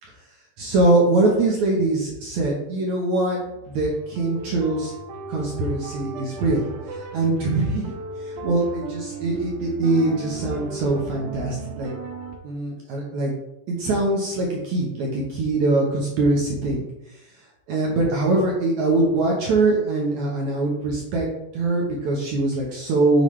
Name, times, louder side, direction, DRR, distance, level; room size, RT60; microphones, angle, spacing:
voice 1, 0.6-3.4 3.7-4.9 5.3-6.6 6.9-7.9 8.2-11.9 12.4-13.3 13.7-16.9 17.7-21.3 21.5-23.2, right 2 dB, 65° right, -2 dB, 2.3 m, -22 dB
sound 1, 3.3-12.4, right 2 dB, 90° right, 2.9 m, -36 dB
7.2 x 7.1 x 3.3 m, 0.89 s
omnidirectional pair, 3.9 m